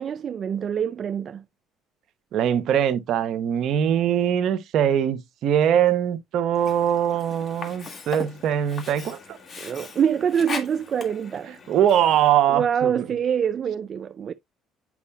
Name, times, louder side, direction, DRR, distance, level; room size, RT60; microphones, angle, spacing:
voice 1, 0.0-1.4 9.6-11.6 12.5-14.3, right 8 dB, 45° right, 0.3 m, -25 dB
voice 2, 2.3-9.4 11.7-13.1, right 10 dB, 65° right, 0.9 m, -22 dB
Sink (filling or washing), 6.5-12.5, left 4 dB, 40° left, 1.6 m, -39 dB
8.4 x 5.4 x 2.2 m
supercardioid pair, 85°, 0 cm